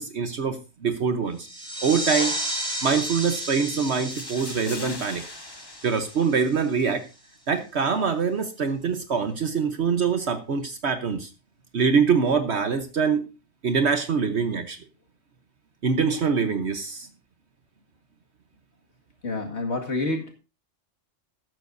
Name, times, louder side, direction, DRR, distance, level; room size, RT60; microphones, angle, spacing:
voice 1, 0.0-1.5 1.8-2.4 2.8-5.3 5.8-7.0 7.5-11.3 11.7-13.3 13.6-14.8 15.8-17.1, right 5 dB, 60° right, 8 dB, 1.3 m, -24 dB
sound 1, 1.4-6.7, right 1 dB, 5° left, 3.7 m, -33 dB
sound 2, 3.8-6.9, left 3 dB, 25° left, 0.8 m, -42 dB
voice 2, 19.2-20.3, left 2 dB, 60° left, 2 dB, 2.3 m, -28 dB
14.5 x 12.5 x 2.6 m, 0.28 s
omnidirectional pair, 1.3 m